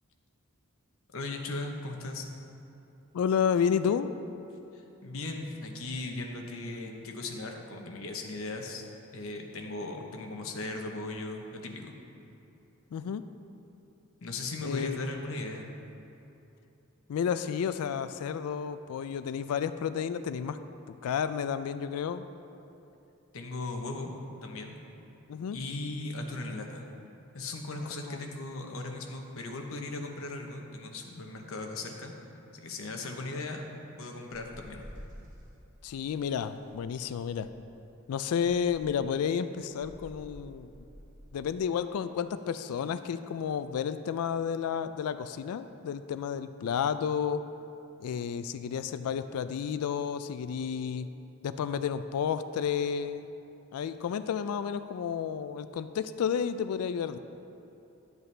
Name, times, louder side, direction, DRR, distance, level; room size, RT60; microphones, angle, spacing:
voice 1, 1.1-2.2 4.7-8.8 9.1-11.9 14.2-15.7 23.3-24.1 24.4-24.8 25.5-26.9 27.3-32.1 32.5-33.6 34.0-34.9, left 2 dB, 65° left, 3 dB, 0.9 m, -38 dB
voice 2, 3.1-4.1 12.9-13.2 14.6-15.1 17.1-20.6 20.9-22.2 25.3-25.6 27.8-28.2 35.8-37.5 38.1-40.7 41.3-47.4 48.0-51.1 51.4-53.3 53.7-57.2, left 7 dB, 80° left, 12 dB, 0.3 m, -31 dB
sound 1, 34.4-35.5 36.5-37.7 38.4-39.1 39.8-41.4, equal, 35° right, 2.1 m, -50 dB
10.5 x 8.0 x 3.3 m, 2.9 s
head